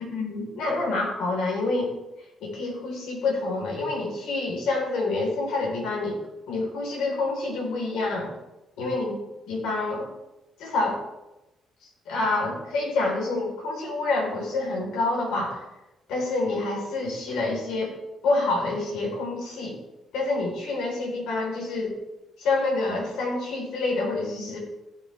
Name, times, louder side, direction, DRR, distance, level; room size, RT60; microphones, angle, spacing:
voice 1, 0.1-1.9 2.4-6.2 6.5-8.3 8.8-9.1 9.4-10.1 10.6-11.0 12.1-15.6 16.1-17.9 18.2-19.8 20.1-22.0 22.4-24.6, left 3 dB, 85° left, -1 dB, 4.0 m, -27 dB
16.0 x 6.9 x 3.4 m, 0.97 s
cardioid pair, 90°, 0 cm